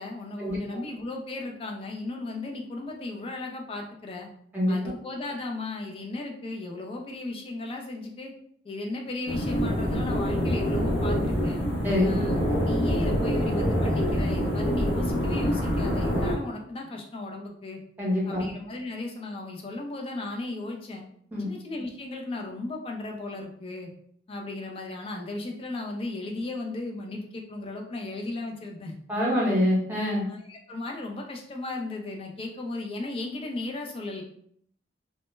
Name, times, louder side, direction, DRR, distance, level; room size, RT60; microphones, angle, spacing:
voice 1, 0.0-4.3 4.7-8.3 8.6-11.6 12.0-17.8 18.3-21.0 21.4-23.9 24.3-28.9 30.3-34.2, left 2 dB, 30° left, 2 dB, 0.3 m, -36 dB
voice 2, 4.5-4.9 11.8-12.2 18.0-18.5 21.3-21.5 29.1-30.3, left 1 dB, 10° right, -5 dB, 0.7 m, -25 dB
sound 1, 9.3-16.4, equal, 90° left, 0.6 m, -26 dB
2.1 x 2.0 x 3.0 m, 0.65 s
head